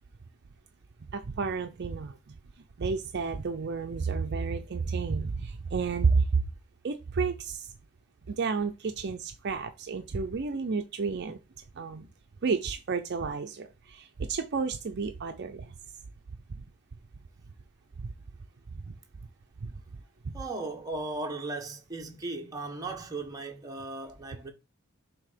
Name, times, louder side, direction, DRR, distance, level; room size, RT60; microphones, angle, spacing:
voice 1, 1.1-2.2 2.8-6.4 6.8-7.7 8.3-11.4 11.8-12.1 12.4-15.7 18.0-18.1 18.7-18.9 19.6-19.7, right 4 dB, 50° right, 0.5 m, -31 dB
voice 2, 20.3-24.5, right 3 dB, 15° right, 1.0 m, -37 dB
7.0 x 2.7 x 5.0 m
head